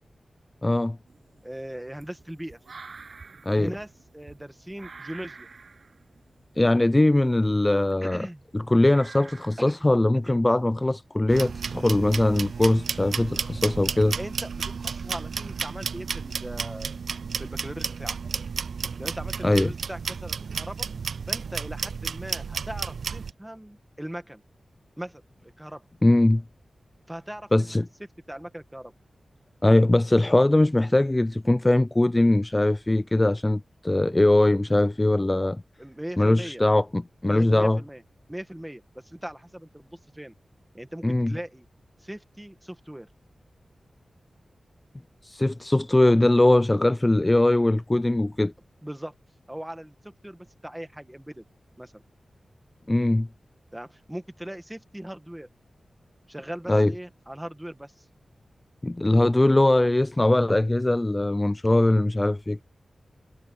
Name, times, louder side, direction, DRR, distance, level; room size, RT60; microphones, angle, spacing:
voice 1, 0.6-1.0 3.5-3.7 6.6-8.3 8.5-14.2 19.4-19.7 26.0-26.4 27.5-27.9 29.6-35.6 36.2-37.8 41.0-41.4 45.2-48.5 52.9-53.3 56.7-56.9 58.8-62.6, left 1 dB, 20° left, 0.5 m, -21 dB
sound 1, 1.1-8.4 8.8-9.8 11.1-11.2 12.5-12.6 15.2-15.5 15.9-16.3 16.9-17.5 18.1-18.2 19.2-19.3 19.7-19.8, right 4 dB, 65° right, 7.0 m, -49 dB
voice 2, 1.4-2.6 3.5-5.5 8.0-8.4 9.6-9.8 10.2-10.4 14.0-17.0 17.4-18.2 19.0-20.9 21.3-24.4 25.0-25.2 25.6-25.9 27.1-27.5 28.0-28.9 35.8-36.6 37.3-38.0 38.3-40.3 40.7-41.6 42.0-43.1 48.8-49.1 49.5-51.4 51.8-52.0 53.7-55.5 56.3-58.0, right 1 dB, 10° right, 1.8 m, -39 dB
sound 2, 11.3-23.3, right 6 dB, 90° right, 0.3 m, -32 dB
wide cardioid pair, 80°, 0 cm